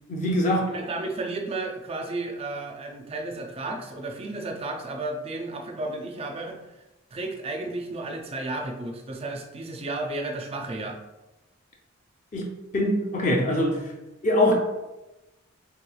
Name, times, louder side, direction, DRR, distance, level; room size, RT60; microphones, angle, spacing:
voice 1, 0.1-0.7 12.3-13.8 14.2-14.5, left 1 dB, 35° left, -1 dB, 0.5 m, -23 dB
voice 2, 0.7-6.6 7.1-11.0, right 2 dB, 30° right, 2 dB, 0.4 m, -33 dB
3.2 x 3.1 x 2.3 m, 1.0 s
head